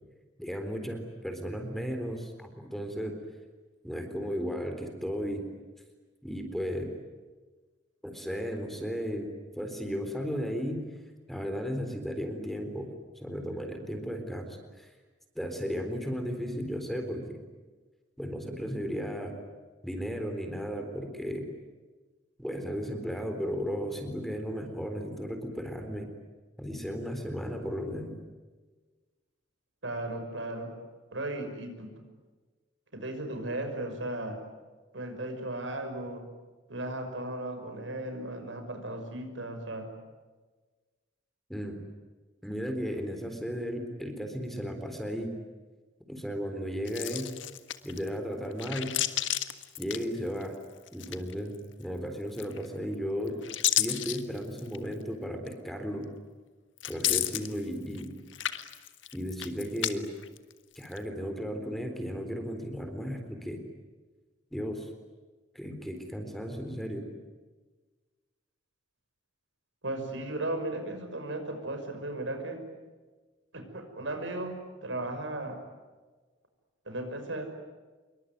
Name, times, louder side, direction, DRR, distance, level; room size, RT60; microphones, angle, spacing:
voice 1, 0.4-3.1 3.8-5.5 6.2-6.9 8.0-9.3 9.6-10.8 11.3-12.9 13.2-14.9 15.4-17.4 18.2-19.4 19.8-21.5 22.4-26.1 26.6-28.2 41.5-41.8 42.4-45.4 46.1-47.3 47.8-48.9 49.8-50.6 50.9-53.4 53.7-56.1 56.9-58.1 59.1-60.1 60.8-63.6 64.5-64.9 65.5-67.0, equal, ahead, 6 dB, 3.9 m, -35 dB
voice 2, 29.8-30.7 31.1-31.9 32.9-34.4 34.9-36.2 36.7-39.9 69.8-72.6 73.5-75.6 76.9-77.4, right 1 dB, 80° right, 6 dB, 5.9 m, -36 dB
sound 1, 46.9-48.1 48.5-50.6 50.9-51.6 52.3-52.9 53.3-54.9 55.5-55.6 56.8-58.1 58.3-59.9 60.2-61.0, left 12 dB, 85° left, 1.6 m, -32 dB
26.5 x 23.5 x 9.5 m, 1.3 s
head